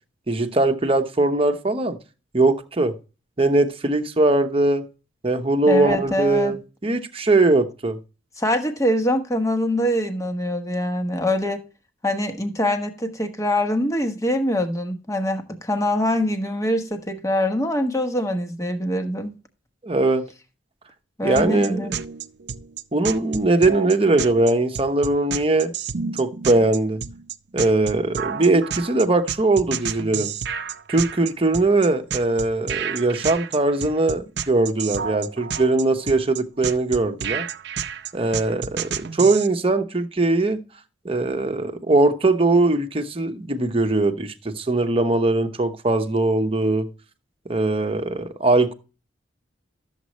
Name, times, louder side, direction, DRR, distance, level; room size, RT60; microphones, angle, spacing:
voice 1, 0.3-2.0 2.3-2.9 3.4-4.9 5.2-8.0 19.8-20.3 21.2-21.9 22.9-25.7 26.1-27.0 27.5-30.3 30.9-37.5 38.1-40.6 41.0-46.9 47.5-48.7, right 2 dB, 30° right, 1.0 m, -20 dB
voice 2, 5.7-6.5 8.4-11.6 12.0-19.3 21.2-22.0, left 1 dB, 15° left, 1.2 m, -24 dB
sound 1, 21.4-39.5, right 7 dB, 65° right, 0.6 m, -30 dB
12.5 x 7.4 x 3.1 m
head